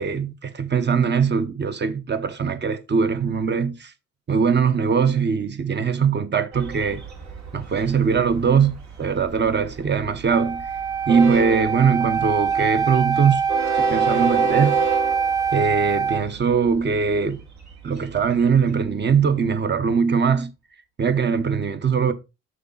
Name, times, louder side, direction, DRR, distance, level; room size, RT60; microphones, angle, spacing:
voice 1, 0.0-3.9 4.3-7.0 7.5-10.7 11.1-13.4 13.7-14.8 15.5-17.4 17.8-20.5 21.0-22.1, right 6 dB, 35° right, 1.1 m, -21 dB
Train, 6.5-19.5, right 4 dB, 65° right, 2.5 m, -31 dB
Wind instrument woodwind instrument, 10.3-16.2, right 6 dB, 10° right, 0.9 m, -23 dB
6.6 x 5.6 x 4.0 m
cardioid pair, 90°, 30 cm